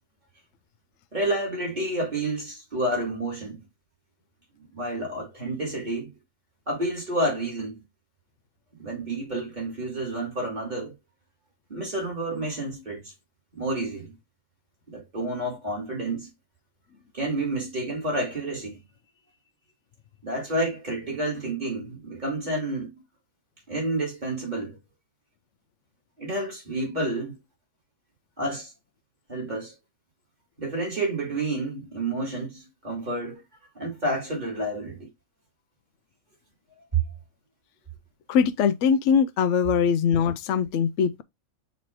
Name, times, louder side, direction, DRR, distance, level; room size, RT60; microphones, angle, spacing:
voice 1, 1.1-3.6 4.6-6.1 6.7-7.8 8.8-10.9 11.7-13.1 13.5-14.2 14.9-16.3 17.1-18.8 20.2-22.9 23.7-24.8 26.2-27.4 28.4-28.7 29.3-29.7 30.6-33.4 33.7-35.1 36.9-37.0, right 2 dB, 30° right, 3.0 m, -29 dB
voice 2, 38.3-41.2, left 7 dB, 70° left, 0.8 m, -22 dB
6.9 x 3.2 x 4.5 m
omnidirectional pair, 1.4 m